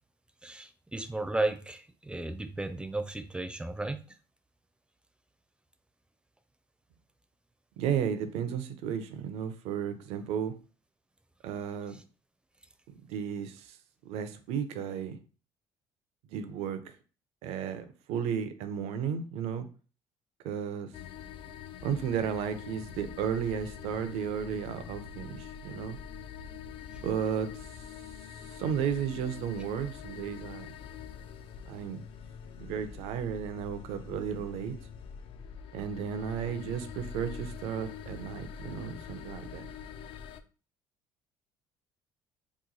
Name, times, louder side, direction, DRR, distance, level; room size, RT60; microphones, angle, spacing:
voice 1, 0.4-4.0, right 2 dB, 10° right, 0.4 m, -34 dB
voice 2, 7.8-10.5 11.4-11.9 13.1-13.8 14.0-15.2 16.3-16.8 17.4-19.7 20.4-20.9 21.8-26.0 27.0-27.5 28.5-30.7 31.7-32.0 32.6-34.8 35.7-39.7, right 8 dB, 80° right, 0.5 m, -33 dB
sound 1, 20.9-40.4, left 7 dB, 60° left, 0.4 m, -44 dB
3.0 x 2.2 x 3.9 m
supercardioid pair, 90°, 10 cm